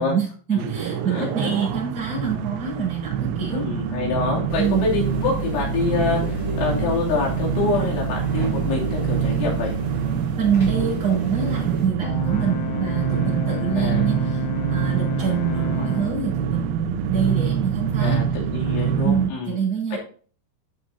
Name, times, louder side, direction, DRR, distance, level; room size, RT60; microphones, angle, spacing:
voice 1, 0.0-3.6 4.6-4.9 10.4-18.2 19.0-20.0, right 7 dB, 25° right, -4 dB, 5.9 m, -25 dB
voice 2, 0.5-1.6 3.5-9.7 13.8-14.0 18.0-19.6 19.9-20.0, left 3 dB, 70° left, -3 dB, 5.2 m, -26 dB
sound 1, 0.6-19.3, right 7 dB, 85° right, 2.5 m, -25 dB
sound 2, 4.5-11.9, equal, 10° left, 2.2 m, -32 dB
Brass instrument, 12.0-16.3, left 11 dB, 90° left, 3.2 m, -32 dB
12.5 x 7.5 x 2.7 m, 0.43 s
omnidirectional pair, 5.6 m